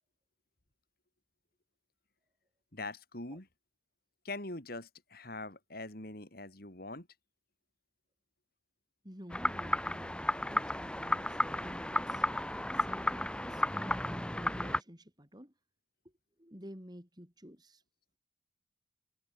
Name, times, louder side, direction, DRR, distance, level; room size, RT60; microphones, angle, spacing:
voice 1, 2.7-3.5 4.2-7.1, left 2 dB, 50° left, 4.5 m, -43 dB
voice 2, 9.0-12.3 12.7-15.5 16.0-16.1 16.4-17.8, equal, 20° right, 5.6 m, -51 dB
sound 1, 9.3-14.8, left 1 dB, 5° left, 2.2 m, -33 dB
head